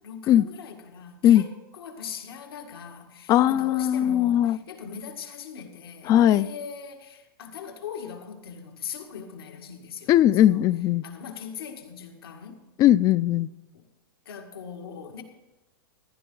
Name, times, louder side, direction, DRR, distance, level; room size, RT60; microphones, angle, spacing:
voice 1, 0.0-10.1 10.4-10.7 11.0-12.6 14.3-15.2, left 7 dB, 90° left, 3 dB, 1.9 m, -40 dB
voice 2, 3.3-4.6 6.1-6.5 10.1-11.0 12.8-13.5, left 12 dB, 30° left, 19 dB, 0.3 m, -19 dB
15.5 x 11.0 x 3.9 m, 1.0 s
hypercardioid pair, 130°, 12 cm